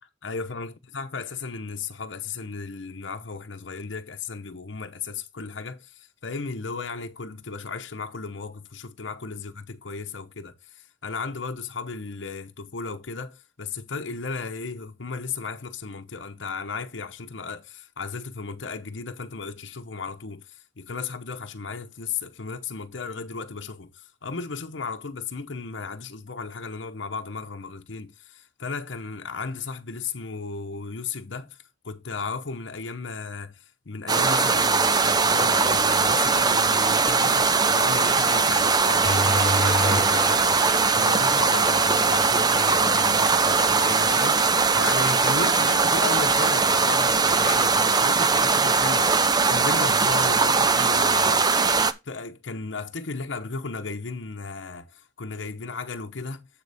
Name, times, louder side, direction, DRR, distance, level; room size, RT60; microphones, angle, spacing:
voice 1, 0.2-31.6 31.8-51.7 52.0-56.5, left 4 dB, 70° left, 0.9 m, -35 dB
sound 1, 34.1-51.9, right 4 dB, 20° right, 0.5 m, -21 dB
sound 2, 39.0-44.2, left 1 dB, ahead, 2.0 m, -31 dB
7.8 x 6.6 x 3.4 m
head